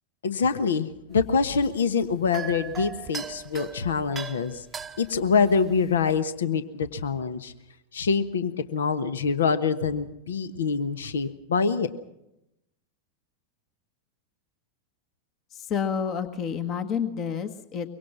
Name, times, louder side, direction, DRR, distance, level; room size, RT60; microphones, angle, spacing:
voice 1, 0.2-4.7 5.0-7.5 7.9-11.9, left 5 dB, 65° left, 12 dB, 1.3 m, -25 dB
sound 1, 1.1-6.2, right 6 dB, 15° right, 0.9 m, -40 dB
voice 2, 15.5-17.9, left 7 dB, 35° left, 9 dB, 1.5 m, -29 dB
24.0 x 24.0 x 6.1 m, 0.85 s
figure-of-eight pair, 90°, 0 cm